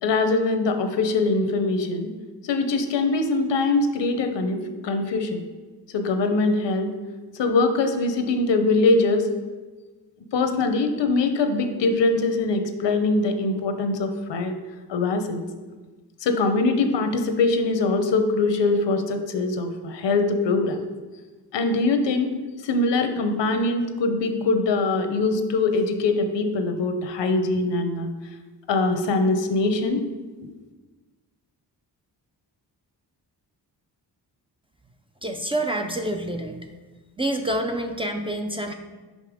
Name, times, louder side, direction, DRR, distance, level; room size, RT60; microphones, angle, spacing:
voice 1, 0.0-2.1 2.4-5.4 5.9-6.9 7.3-9.3 10.3-14.5 14.9-15.4 16.2-20.8 21.5-22.3 22.6-28.1 28.7-30.0, left 3 dB, 85° left, 7 dB, 0.8 m, -22 dB
voice 2, 35.2-36.6 37.2-38.7, right 1 dB, 15° right, 4 dB, 0.4 m, -27 dB
5.5 x 5.3 x 4.9 m, 1.3 s
wide cardioid pair, 135°, 42 cm